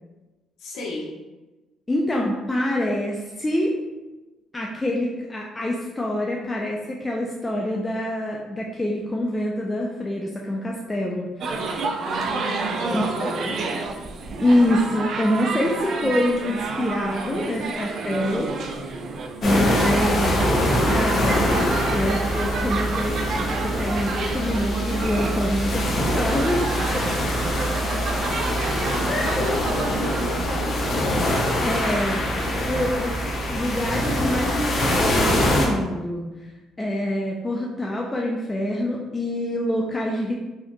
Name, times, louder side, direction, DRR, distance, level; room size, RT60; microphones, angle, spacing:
voice 1, 0.6-1.1 12.0-13.8 28.6-30.8, left 2 dB, 75° left, -3 dB, 1.0 m, -33 dB
voice 2, 1.9-3.7 4.5-11.5 12.9-13.3 14.4-18.9 19.4-20.5 20.8-21.5 21.9-27.0 29.1-29.4 31.6-32.3 32.7-33.2 33.5-36.5 36.8-40.3, left 1 dB, 15° left, -2 dB, 0.4 m, -25 dB
sound 1, 11.4-30.2, right 3 dB, 55° right, 0.4 m, -30 dB
sound 2, 19.4-35.7, equal, 45° left, 0.7 m, -24 dB
4.6 x 2.8 x 2.2 m, 1.1 s
cardioid pair, 125°, 0 cm